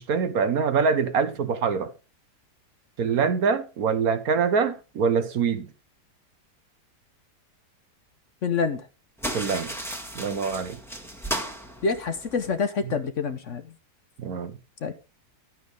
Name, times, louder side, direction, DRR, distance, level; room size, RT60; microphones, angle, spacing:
voice 1, 0.0-1.9 3.0-5.7 9.3-9.7 10.1-10.8 12.8-12.9 14.2-14.5, right 6 dB, 65° right, 1.4 m, -24 dB
voice 2, 8.4-8.8 11.8-13.6 14.8-14.9, left 5 dB, 50° left, 1.1 m, -26 dB
sound 1, 9.2-12.6, right 1 dB, ahead, 1.6 m, -34 dB
11.5 x 9.4 x 3.4 m
omnidirectional pair, 1.8 m